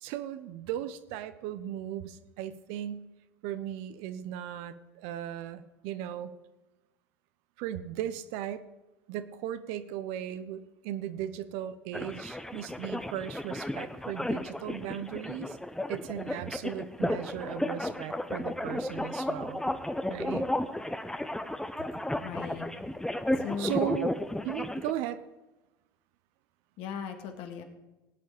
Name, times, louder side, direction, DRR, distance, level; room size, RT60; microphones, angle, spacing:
voice 1, 0.0-3.0 3.4-6.3 7.6-8.6 9.1-15.6 15.9-19.7 20.1-20.5 23.6-24.1 24.4-25.2, right 11 dB, 60° right, 12 dB, 0.9 m, -37 dB
sound 1, 11.9-24.9, left 1 dB, 5° left, 0.9 m, -33 dB
voice 2, 22.2-22.7 23.4-23.9 26.8-27.6, left 6 dB, 55° left, 5 dB, 2.2 m, -37 dB
18.5 x 9.0 x 5.1 m, 1.1 s
hypercardioid pair, 80°, 12 cm